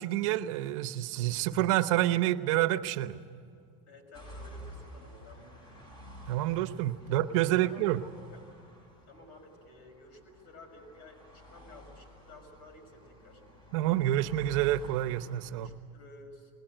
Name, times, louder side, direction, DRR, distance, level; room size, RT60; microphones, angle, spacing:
voice 1, 0.0-3.2 6.3-8.0 13.7-15.7, right 14 dB, 75° right, 12 dB, 0.9 m, -28 dB
voice 2, 3.9-5.6 7.0-8.4 9.1-13.4 15.5-16.5, left 2 dB, 70° left, 3 dB, 6.2 m, -53 dB
sound 1, 4.1-15.5, equal, 25° left, 6.0 m, -51 dB
21.0 x 20.5 x 9.0 m, 2.3 s
supercardioid pair, 140°, 17 cm